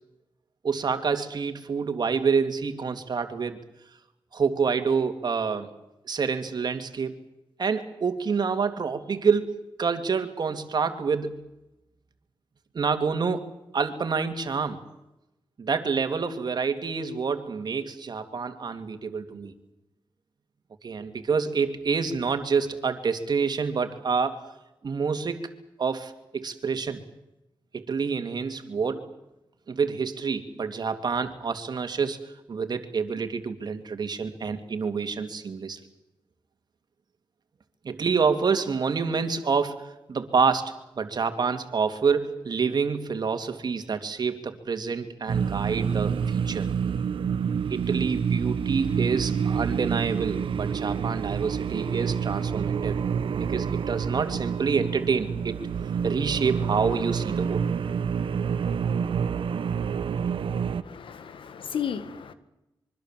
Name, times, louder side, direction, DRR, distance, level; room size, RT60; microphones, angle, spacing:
voice 1, 0.6-3.6 4.3-5.7 6.1-7.1 7.6-11.3 12.7-13.5 13.7-14.8 15.6-19.5 20.8-24.4 24.8-25.4 25.8-27.0 27.7-29.1 29.7-32.2 32.5-35.8 37.8-46.7 47.7-53.0 53.4-55.6 56.0-57.6, right 5 dB, 55° right, 2.6 m, -27 dB
sound 1, 45.3-60.8, right 7 dB, 75° right, 1.2 m, -28 dB
voice 2, 60.8-62.3, left 8 dB, 75° left, 1.8 m, -34 dB
25.0 x 24.0 x 7.5 m
wide cardioid pair, 95°, 9 cm